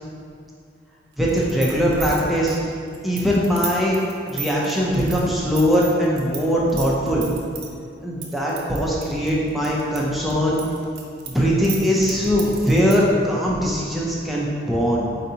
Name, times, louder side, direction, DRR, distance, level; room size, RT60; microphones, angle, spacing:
voice 1, 1.2-2.6 3.0-4.0 4.3-7.3 8.0-10.6 11.3-15.1, equal, ahead, -5 dB, 0.5 m, -21 dB
sound 1, 1.3-6.4 6.7-7.7 8.2-10.0 10.3-13.1, right 6 dB, 55° right, 0.5 m, -34 dB
4.4 x 3.9 x 2.8 m, 2.3 s
head